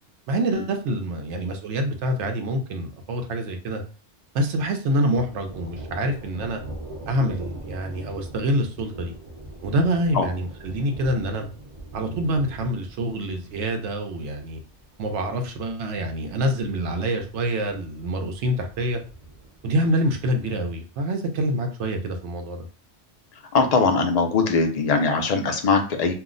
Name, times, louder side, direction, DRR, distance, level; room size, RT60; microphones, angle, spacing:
voice 1, 0.3-3.8 4.3-6.6 7.1-9.1 9.6-11.5 11.9-14.6 15.0-19.0 19.6-22.7, right 1 dB, 75° right, 5 dB, 0.9 m, -26 dB
Thunder, 5.1-20.7, right 1 dB, 40° right, 0.6 m, -42 dB
voice 2, 23.5-26.1, left 4 dB, 60° left, 5 dB, 0.4 m, -21 dB
2.5 x 2.0 x 3.7 m, 0.35 s
omnidirectional pair, 1.2 m